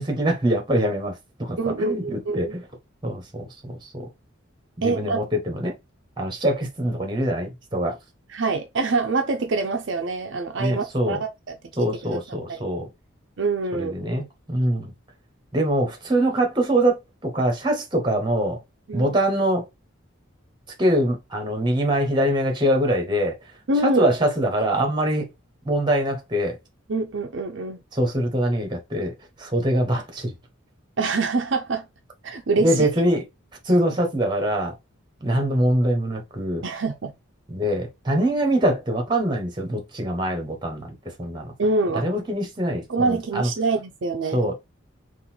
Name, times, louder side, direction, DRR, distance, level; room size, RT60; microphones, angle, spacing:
voice 1, 0.0-2.6 3.0-4.1 4.8-5.7 6.2-8.0 10.6-11.2 11.8-12.9 13.7-14.9 15.5-18.6 18.9-19.7 20.8-23.3 23.8-25.3 25.6-26.6 27.9-30.3 32.6-33.2 33.6-34.7 35.2-36.6 37.5-40.9 41.2-41.5 41.9-43.5 44.3-44.6, right 1 dB, 20° right, 1.1 m, -23 dB
voice 2, 1.6-2.6 4.8-5.2 8.3-12.2 12.5-12.6 13.4-13.9 18.9-19.2 23.7-24.1 26.9-27.8 31.0-31.8 32.2-32.9 36.6-37.1 41.6-42.1 42.9-44.4, right 3 dB, 60° right, 0.5 m, -25 dB
3.9 x 2.5 x 4.3 m
head